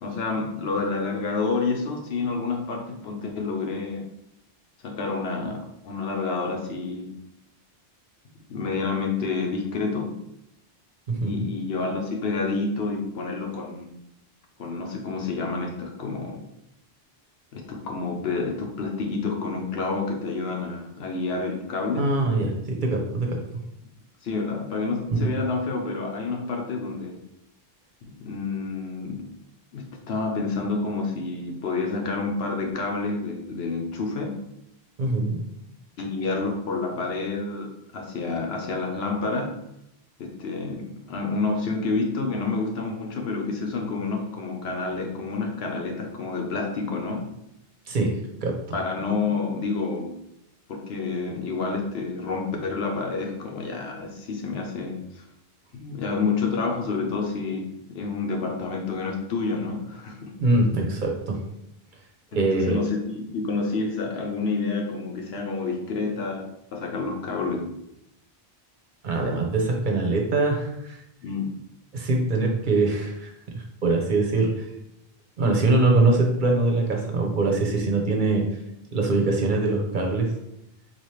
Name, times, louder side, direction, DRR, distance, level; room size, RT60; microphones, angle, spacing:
voice 1, 0.0-4.1 4.8-7.2 8.5-10.2 11.2-14.0 14.6-16.4 17.5-22.2 24.2-27.2 28.1-29.3 29.7-34.4 36.0-39.6 40.2-47.3 48.7-50.2 50.7-55.2 55.7-60.3 62.3-67.8 71.2-71.5, left 4 dB, 80° left, 2 dB, 1.0 m, -29 dB
voice 2, 22.0-23.4 25.2-25.3 35.0-35.4 47.9-48.1 48.4-48.5 60.4-61.4 62.4-62.8 69.0-71.0 71.9-74.7 75.4-78.4 78.9-80.3, right 2 dB, 55° right, 0 dB, 0.8 m, -23 dB
4.0 x 2.9 x 3.1 m, 0.81 s
omnidirectional pair, 1.0 m